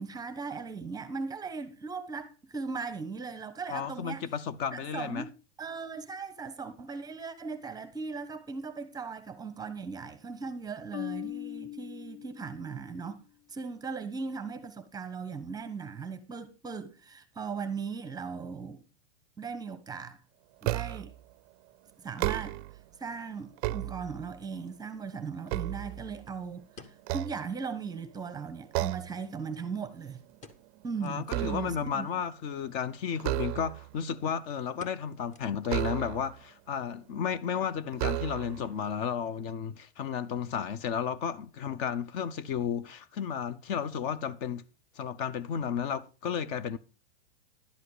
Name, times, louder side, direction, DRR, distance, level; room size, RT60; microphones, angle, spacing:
voice 1, 0.0-4.3 4.7-5.3 5.6-13.2 13.5-18.8 19.4-20.2 20.6-21.1 22.0-22.6 23.0-30.2 30.8-32.1, right 5 dB, 10° right, 1.0 m, -38 dB
voice 2, 3.7-5.3 31.0-44.6 45.0-46.8, left 7 dB, 40° left, 0.9 m, -33 dB
Marimba xylophone, 10.9-13.0, left 16 dB, 70° left, 0.7 m, -40 dB
sound 1, 20.6-21.2 22.0-22.8 23.4-24.5 25.0-26.5 27.0-28.0 28.7-29.2 29.6-29.9 30.2-31.9 33.2-34.0 35.6-36.4 37.2-37.3 37.9-38.7, right 19 dB, 35° right, 0.5 m, -34 dB
sound 2, 24.2-24.3 26.3-27.6 27.9-28.0 28.3-28.4 29.0-29.9 30.4-30.7 31.0-31.3 31.8-31.9 32.8-33.1 33.5-33.6 33.9-34.2 34.8-35.9 36.2-36.3 36.8-37.2 37.5-37.6, left 4 dB, 20° left, 1.4 m, -55 dB
11.5 x 7.7 x 4.9 m
supercardioid pair, 145°, 33 cm